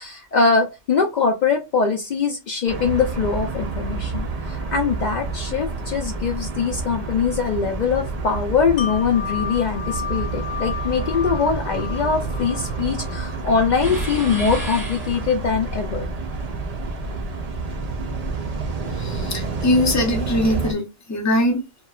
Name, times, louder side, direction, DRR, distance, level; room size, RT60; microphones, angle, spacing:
voice 1, 0.0-16.1, left 5 dB, 80° left, 0.4 m, -22 dB
sound 1, 2.7-20.7, right 3 dB, 65° right, 0.3 m, -29 dB
Wind chime, 8.8-14.6 15.0-15.1, left 7 dB, 60° left, 0.7 m, -34 dB
sound 2, 13.8-15.6, right 1 dB, 15° right, 1.1 m, -31 dB
voice 2, 18.9-20.8 21.1-21.6, left 1 dB, 20° left, 0.5 m, -21 dB
2.8 x 2.3 x 2.3 m
omnidirectional pair, 1.3 m